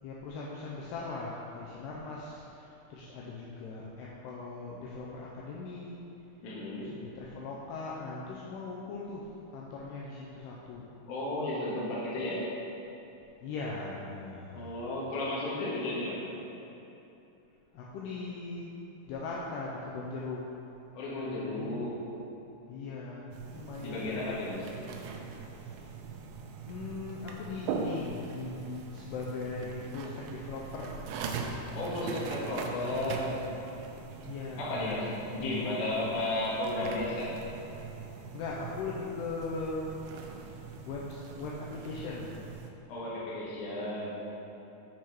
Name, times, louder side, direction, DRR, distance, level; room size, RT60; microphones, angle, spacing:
voice 1, 0.0-6.0 6.8-10.9 13.4-14.7 17.7-18.8 19.1-20.5 21.5-22.0 22.7-24.3 25.5-25.9 26.7-31.1 31.6-32.1 34.3-35.7 38.3-40.0 40.9-42.4, left 3 dB, 80° left, -4 dB, 2.4 m, -40 dB
voice 2, 6.4-6.9 11.1-12.5 14.5-16.2 20.9-22.0 23.8-24.7 31.8-33.4 34.6-37.3 42.9-44.2, left 2 dB, 60° left, -6 dB, 2.2 m, -33 dB
sound 1, 23.3-42.7, right 5 dB, 90° right, 2.8 m, -41 dB
8.2 x 4.4 x 4.6 m, 2.9 s
omnidirectional pair, 5.0 m